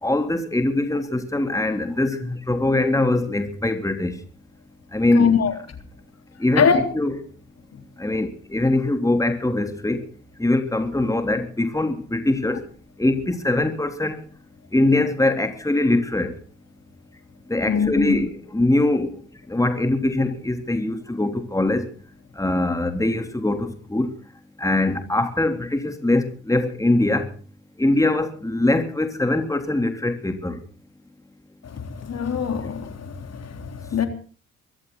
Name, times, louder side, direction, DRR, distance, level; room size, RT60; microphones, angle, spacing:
voice 1, 0.0-4.1 4.9-5.3 6.4-7.2 8.0-10.0 10.4-12.6 13.0-14.2 14.7-16.3 17.5-19.1 19.5-21.9 22.4-24.1 24.6-27.3 27.8-30.6, left 2 dB, 10° left, 3.4 m, -22 dB
voice 2, 5.1-5.5 6.6-6.8 17.7-18.2 31.8-34.1, left 7 dB, 50° left, 3.7 m, -22 dB
23.5 x 14.0 x 4.1 m
supercardioid pair, 60°, 32 cm